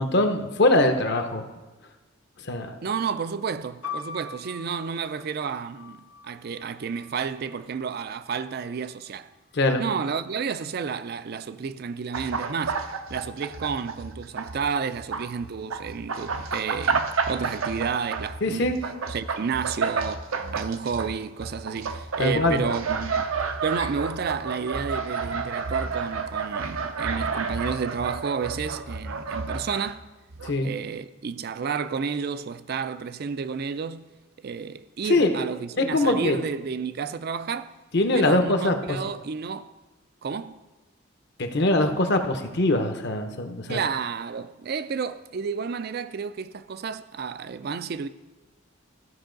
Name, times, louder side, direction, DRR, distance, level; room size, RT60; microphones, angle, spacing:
voice 1, 0.0-1.4 2.4-2.8 9.5-9.8 18.4-18.8 22.2-22.6 30.4-30.7 35.1-35.3 35.8-36.4 37.9-39.0 41.4-43.8, left 2 dB, 50° left, 0.8 m, -22 dB
voice 2, 2.8-9.3 9.8-18.7 19.1-23.3 23.6-30.1 30.6-34.1 34.4-37.7 38.1-39.7 40.2-40.6 43.7-48.1, right 6 dB, 45° right, 0.4 m, -31 dB
sound 1, 3.8-7.7 8.5-9.2, left 5 dB, 85° left, 1.3 m, -42 dB
sound 2, 12.1-14.6 14.9-30.0 30.3-30.5, right 5 dB, 80° right, 0.7 m, -30 dB
14.0 x 5.5 x 3.9 m
head